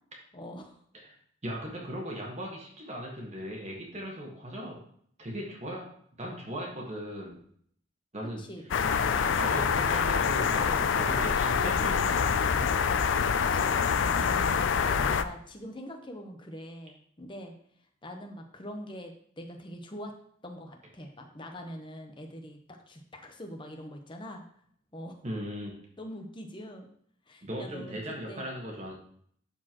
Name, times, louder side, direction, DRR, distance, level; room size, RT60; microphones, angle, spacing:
voice 1, 0.3-0.8 8.2-9.3 9.9-10.9 13.3-17.5 18.0-20.1 20.4-22.6 22.9-24.4 24.9-25.2 26.0-26.9 27.3-28.4, equal, 25° left, 3 dB, 0.9 m, -43 dB
voice 2, 1.4-4.8 5.2-5.8 6.2-7.4 8.1-8.4 9.3-10.6 10.9-12.4 25.2-25.7 27.4-28.9, equal, 35° right, -2 dB, 1.5 m, -38 dB
sound 1, 8.7-15.2, left 6 dB, 75° left, 0.4 m, -26 dB
12.0 x 4.4 x 3.0 m, 0.64 s
head